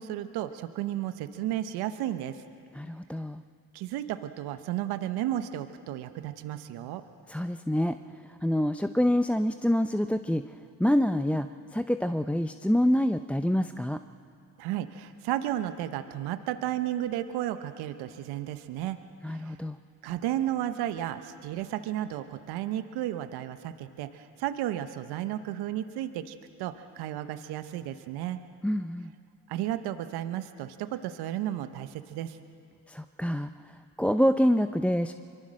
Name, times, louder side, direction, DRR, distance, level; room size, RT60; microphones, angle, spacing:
voice 1, 0.0-2.4 3.7-7.0 14.6-19.0 19.3-19.5 20.0-28.4 29.5-32.4, right 12 dB, 80° right, 10 dB, 1.0 m, -33 dB
voice 2, 2.7-3.4 7.3-8.0 8.3-10.4 10.8-14.0 19.2-19.8 28.6-29.1 32.9-35.1, equal, 5° left, 9 dB, 0.7 m, -26 dB
24.0 x 23.0 x 6.4 m, 2.6 s
hypercardioid pair, 50°, 38 cm